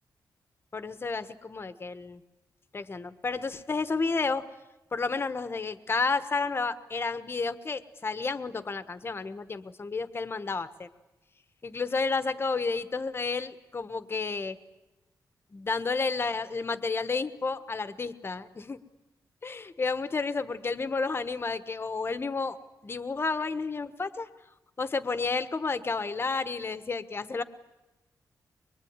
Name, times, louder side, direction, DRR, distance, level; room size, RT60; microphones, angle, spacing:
voice 1, 0.7-2.2 2.7-4.4 4.9-10.9 11.6-14.6 15.5-18.8 19.4-22.6 22.8-24.3 24.8-27.4, left 4 dB, 35° left, 12 dB, 1.3 m, -31 dB
24.0 x 22.5 x 9.6 m, 1.0 s
wide cardioid pair, 140°, 7 cm